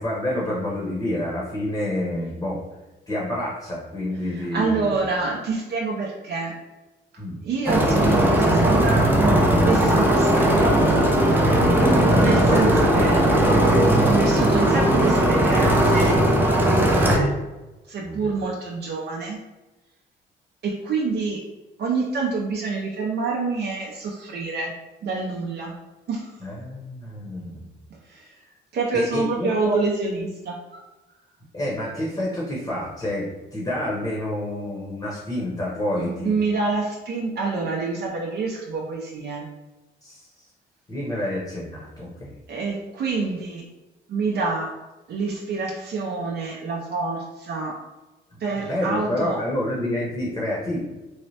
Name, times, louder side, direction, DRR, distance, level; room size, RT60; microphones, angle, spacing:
voice 1, 0.0-2.6 3.1-4.9 7.2-7.4 11.8-13.5 14.0-14.3 18.0-18.3 26.4-27.6 28.9-29.8 31.5-36.3 40.0-40.2 40.9-42.3 48.7-50.8, left 1 dB, 20° left, -5 dB, 0.8 m, -28 dB
voice 2, 4.3-6.6 7.4-9.2 9.6-10.6 12.2-13.3 14.0-16.2 16.6-17.3 17.9-19.4 20.6-21.4 21.8-24.7 25.0-25.7 26.1-26.3 28.1-28.3 28.7-30.8 36.0-39.5 42.5-43.6 44.1-44.8 45.1-47.8 48.4-49.4, right 4 dB, 55° right, -2 dB, 0.5 m, -27 dB
sound 1, 7.7-17.2, right 1 dB, 10° right, 0.6 m, -18 dB
3.1 x 2.0 x 2.7 m, 1.1 s
cardioid pair, 90°, 20 cm